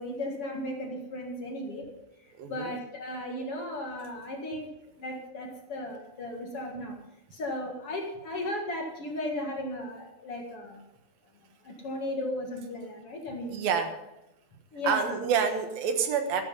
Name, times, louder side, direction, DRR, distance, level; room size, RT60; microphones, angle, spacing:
voice 1, 0.0-1.9 2.5-7.0 7.3-10.8 11.6-13.6 14.7-15.2, left 1 dB, 45° left, 1 dB, 2.4 m, -35 dB
voice 2, 2.4-2.7 13.5-13.9 14.8-16.4, right 7 dB, 80° right, 6 dB, 3.2 m, -27 dB
14.5 x 11.5 x 5.5 m, 0.92 s
omnidirectional pair, 4.1 m